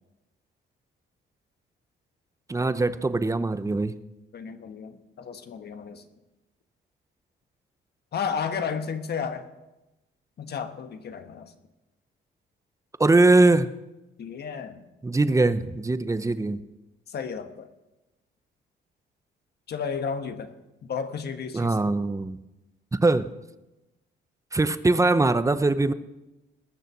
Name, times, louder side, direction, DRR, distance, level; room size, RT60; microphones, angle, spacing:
voice 1, 2.5-3.9 13.0-13.7 15.0-16.6 21.5-22.4 22.9-23.3 24.5-25.9, right 2 dB, 15° right, 13 dB, 0.7 m, -21 dB
voice 2, 4.3-6.0 8.1-9.5 10.4-11.5 14.2-14.8 17.1-17.7 19.7-20.5 20.8-21.9, left 6 dB, 55° left, 8 dB, 1.3 m, -33 dB
20.0 x 6.7 x 6.1 m, 1.0 s
cardioid pair, 90°, 20 cm